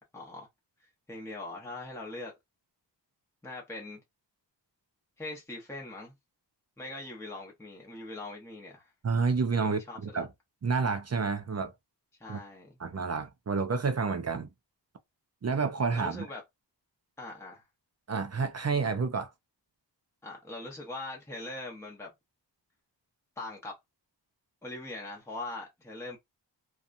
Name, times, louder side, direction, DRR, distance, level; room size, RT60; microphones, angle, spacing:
voice 1, 0.1-0.5 1.1-2.3 3.4-4.0 5.2-6.1 6.8-8.9 9.6-10.2 12.2-12.8 15.9-16.4 17.2-17.6 20.2-22.1 23.4-23.8 24.6-26.2, left 2 dB, 5° left, 0.8 m, -41 dB
voice 2, 9.0-10.3 10.6-11.7 12.3-12.4 12.8-14.5 15.4-16.3 18.1-19.3, right 4 dB, 35° right, 0.5 m, -29 dB
2.7 x 2.3 x 2.5 m
wide cardioid pair, 85°, 44 cm